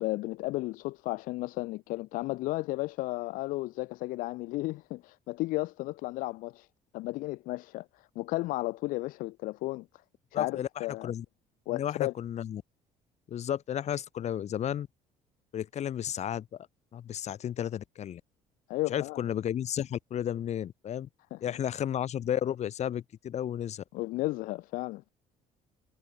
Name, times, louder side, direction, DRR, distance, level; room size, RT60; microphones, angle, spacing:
voice 1, 0.0-6.7 6.9-9.9 10.3-11.1 11.7-12.1 18.7-19.2 21.3-21.4 23.9-25.1, left 19 dB, 80° left, 1.2 m, -34 dB
voice 2, 10.3-11.2 11.7-12.6 13.3-14.9 15.5-16.7 16.9-18.2 18.9-21.1 21.4-23.8, left 10 dB, 55° left, 4.6 m, -33 dB
cardioid pair, 95°, 14 cm